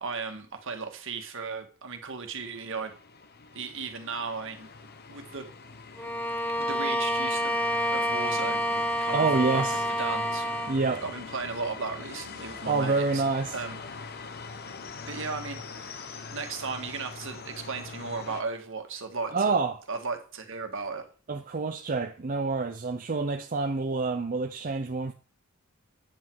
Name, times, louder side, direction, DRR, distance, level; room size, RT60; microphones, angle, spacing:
voice 1, 0.0-2.9 3.5-4.7 5.1-5.5 6.6-7.6 7.9-8.6 9.0-9.3 9.5-10.5 11.0-13.2 13.5-13.8 15.1-19.5 19.9-21.1, right 4 dB, 65° right, 1.7 m, -36 dB
sound 1, 2.3-18.4, left 4 dB, 45° left, 0.9 m, -43 dB
Bowed string instrument, 6.0-10.8, equal, 10° left, 1.3 m, -28 dB
voice 2, 9.1-9.8 10.7-11.0 12.6-13.5 19.3-19.8 21.3-25.1, right 4 dB, 40° right, 0.6 m, -27 dB
9.2 x 8.4 x 4.7 m
head